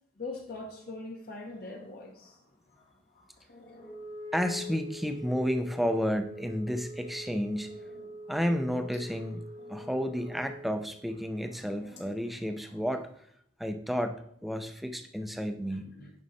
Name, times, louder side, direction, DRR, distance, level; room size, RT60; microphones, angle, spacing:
voice 1, 0.2-2.4 16.0-16.1, left 3 dB, 55° left, 1.3 m, -41 dB
sound 1, 1.2-13.3, left 2 dB, 80° left, 2.8 m, -58 dB
Wind instrument woodwind instrument, 3.8-10.9, left 1 dB, 25° left, 1.3 m, -44 dB
voice 2, 4.3-7.8 8.3-9.4 9.7-13.1 13.6-15.8, equal, ahead, 0.5 m, -31 dB
9.6 x 5.3 x 4.1 m
head